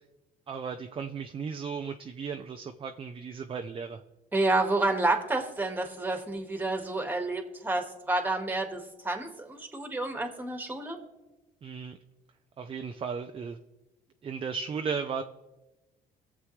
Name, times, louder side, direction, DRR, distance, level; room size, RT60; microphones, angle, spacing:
voice 1, 0.5-4.0 11.6-12.0 12.6-13.6 14.2-15.2, right 6 dB, 35° right, 7 dB, 0.6 m, -35 dB
voice 2, 4.3-11.0, right 2 dB, 10° right, 4 dB, 1.8 m, -29 dB
22.0 x 7.4 x 3.2 m, 1.1 s
cardioid pair, 110°, 17 cm